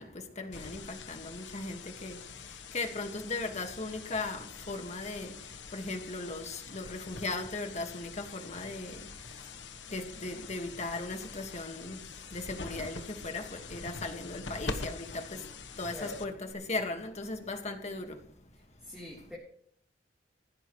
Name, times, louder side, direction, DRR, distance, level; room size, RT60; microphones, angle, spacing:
voice 1, 0.0-18.4 18.7-18.9, left 2 dB, 40° left, 1.9 m, -38 dB
sound 1, 0.5-16.5, left 4 dB, 80° left, 1.3 m, -44 dB
voice 2, 18.8-19.4, left 1 dB, 5° right, 3.8 m, -44 dB
18.0 x 15.5 x 3.3 m
head